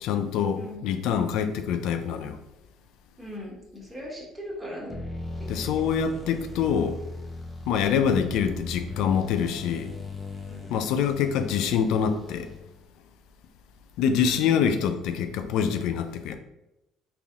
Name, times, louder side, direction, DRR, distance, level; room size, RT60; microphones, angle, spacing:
voice 1, 0.0-2.4 5.5-7.0 7.7-9.9 10.7-12.5 14.0-16.4, left 7 dB, 75° left, 8 dB, 0.3 m, -25 dB
voice 2, 0.5-0.9 3.2-5.0 5.4-5.7 10.4-10.7 14.2-14.7, left 1 dB, 10° right, -3 dB, 1.3 m, -40 dB
sound 1, 4.9-12.9, left 3 dB, 15° left, 0.6 m, -38 dB
3.8 x 2.8 x 2.4 m, 0.91 s
supercardioid pair, 75°, 0 cm